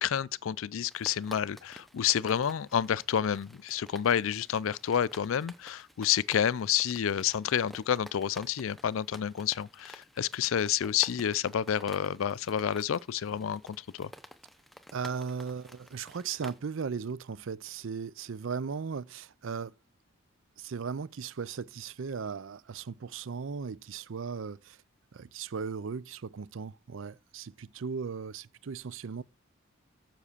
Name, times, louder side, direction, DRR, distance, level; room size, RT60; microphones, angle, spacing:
voice 1, 0.0-14.1, left 9 dB, 70° left, 0.4 m, -29 dB
sound 1, 0.8-16.6, equal, ahead, 0.6 m, -52 dB
voice 2, 14.9-19.7 20.6-24.8 25.1-29.2, right 5 dB, 65° right, 0.5 m, -37 dB
7.4 x 5.8 x 6.6 m
head